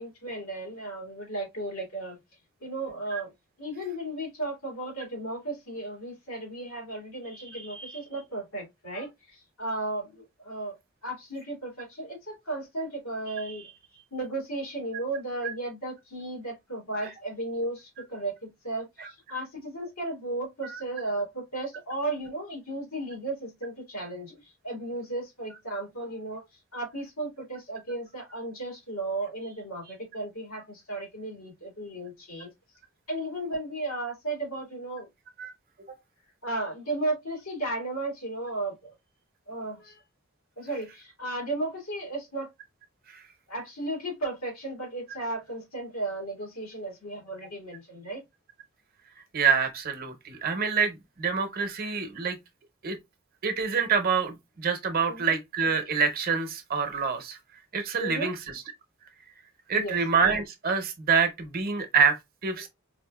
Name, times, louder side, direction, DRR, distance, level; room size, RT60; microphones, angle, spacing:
voice 1, 0.0-2.2 2.6-3.3 3.6-10.7 11.0-26.4 26.7-32.5 33.1-35.1 36.4-38.9 39.5-40.0 40.6-42.5 43.5-48.2 55.1-55.2 58.0-58.3 59.7-60.0, right 2 dB, 90° left, 2.1 m, -35 dB
voice 2, 49.3-52.4 52.8-53.0 53.4-57.4 57.7-58.6 59.7-62.7, right 5 dB, 45° right, 0.8 m, -26 dB
4.1 x 2.5 x 2.3 m
head